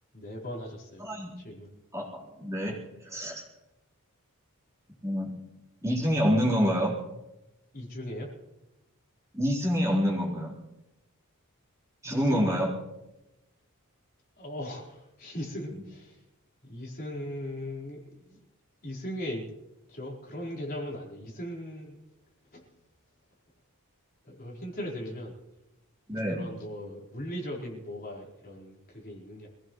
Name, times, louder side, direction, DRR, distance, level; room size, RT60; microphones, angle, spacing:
voice 1, 0.1-1.1 1.4-1.7 7.7-8.3 12.0-12.6 14.4-16.2 16.6-18.4 18.8-19.5 19.9-22.0 22.5-22.7 24.2-25.4 26.1-29.5, equal, 40° left, -3 dB, 4.5 m, -38 dB
voice 2, 1.0-1.3 1.9-2.1 2.4-2.8 3.0-3.4 5.0-5.3 5.8-6.9 9.3-10.5 12.0-12.7 26.1-26.4, equal, 15° right, -5 dB, 4.0 m, -26 dB
26.0 x 16.5 x 3.2 m, 0.97 s
head